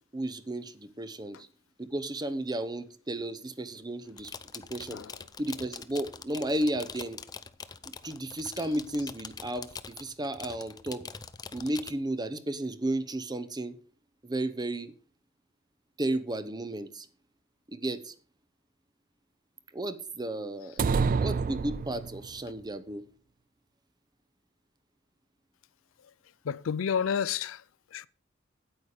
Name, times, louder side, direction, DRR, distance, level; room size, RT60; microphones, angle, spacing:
voice 1, 0.1-1.5 1.8-5.0 5.4-7.2 8.0-11.0 11.5-13.8 14.2-14.9 16.0-17.1 17.7-18.1 19.7-20.8 21.2-23.0, right 1 dB, 20° right, 0.8 m, -33 dB
sound 1, 4.1-11.9, left 5 dB, 20° left, 0.5 m, -44 dB
sound 2, 20.8-22.4, right 5 dB, 45° right, 0.4 m, -28 dB
voice 2, 26.5-27.6 27.9-28.1, left 7 dB, 80° left, 0.4 m, -30 dB
9.2 x 8.4 x 5.0 m
head